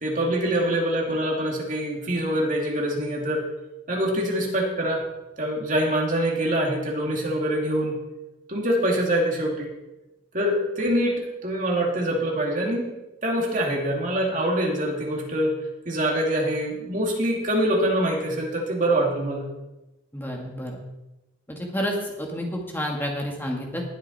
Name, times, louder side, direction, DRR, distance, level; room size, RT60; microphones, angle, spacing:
voice 1, 0.0-3.5 3.9-5.0 5.4-8.0 8.5-9.7 10.3-12.9 13.2-15.6 15.9-19.5, right 1 dB, 40° right, -1 dB, 2.6 m, -24 dB
voice 2, 20.1-20.8 21.5-23.8, equal, 10° left, 0 dB, 2.0 m, -30 dB
19.5 x 7.2 x 4.3 m, 1.0 s
head